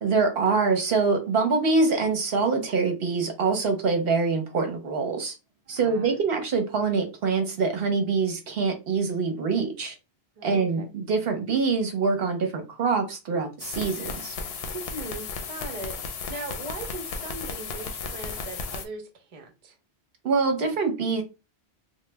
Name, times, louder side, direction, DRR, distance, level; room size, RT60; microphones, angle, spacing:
voice 1, 0.0-5.3 5.7-9.9 10.4-14.4 20.2-21.2, right 4 dB, 65° right, 0.9 m, -25 dB
voice 2, 5.7-6.1 10.4-10.9 14.7-19.8, right 2 dB, 40° right, 0.7 m, -39 dB
sound 1, 13.6-18.9, left 5 dB, 70° left, 0.8 m, -34 dB
3.0 x 2.1 x 3.2 m
omnidirectional pair, 1.1 m